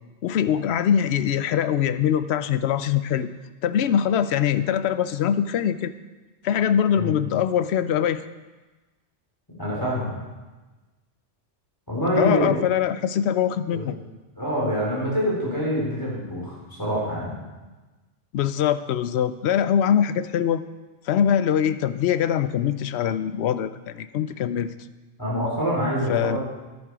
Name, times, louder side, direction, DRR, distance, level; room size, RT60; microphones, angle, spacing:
voice 1, 0.2-3.3 3.6-5.9 6.4-8.2 12.1-14.0 18.3-20.6 21.1-24.7 26.1-26.4, left 9 dB, 65° left, 13 dB, 0.8 m, -23 dB
voice 2, 9.6-10.1 11.9-12.5 13.7-13.9 14.4-17.4 25.2-26.4, equal, 15° left, -5 dB, 4.1 m, -25 dB
10.5 x 10.5 x 4.9 m, 1.2 s
omnidirectional pair, 1.3 m